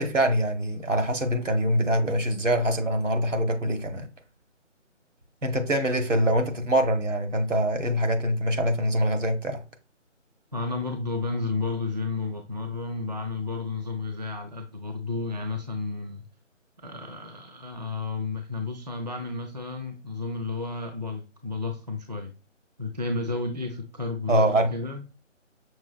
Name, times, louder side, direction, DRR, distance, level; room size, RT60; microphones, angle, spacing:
voice 1, 0.0-4.1 5.4-9.6 24.3-24.7, right 1 dB, 75° right, 1.1 m, -24 dB
voice 2, 10.5-16.2 16.8-22.3 22.8-25.0, left 3 dB, 35° right, 0.4 m, -32 dB
6.0 x 2.9 x 2.2 m
figure-of-eight pair, 155°, 38 cm